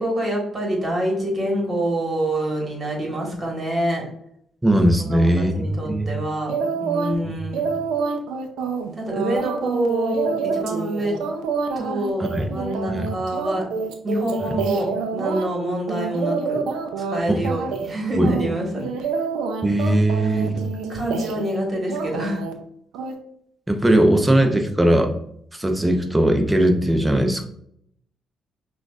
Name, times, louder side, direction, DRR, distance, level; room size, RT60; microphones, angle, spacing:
voice 1, 0.0-4.0 5.1-7.7 9.0-11.2 11.7-13.7 14.0-16.6 17.0-18.9 20.9-22.4, right 1 dB, 30° right, -1 dB, 1.5 m, -26 dB
voice 2, 4.6-6.1 7.3-7.4 12.2-12.5 12.9-13.1 14.4-14.5 17.3-17.4 18.1-18.3 19.6-20.7 23.7-25.1 25.5-27.5, right 1 dB, 10° right, 4 dB, 0.6 m, -19 dB
sound 1, 6.5-7.2 7.5-15.5 15.9-17.2 17.4-17.9 18.2-21.6 21.9-22.5 22.9-23.1, right 5 dB, 90° right, 0.5 m, -27 dB
6.0 x 2.4 x 2.4 m, 0.70 s
cardioid pair, 90°, 0 cm